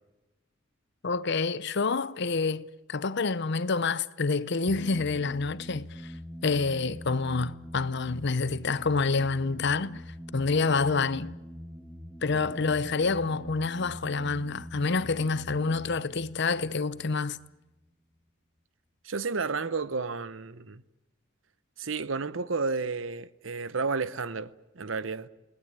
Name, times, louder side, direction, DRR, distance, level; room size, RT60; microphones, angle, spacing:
voice 1, 1.0-6.1 6.4-10.0 10.3-11.3 12.2-17.4, left 4 dB, 55° left, 0.8 m, -28 dB
sound 1, 4.7-17.9, equal, ahead, 1.1 m, -43 dB
voice 2, 19.0-20.8 21.8-25.3, right 4 dB, 70° right, 0.9 m, -32 dB
28.0 x 19.0 x 8.9 m
head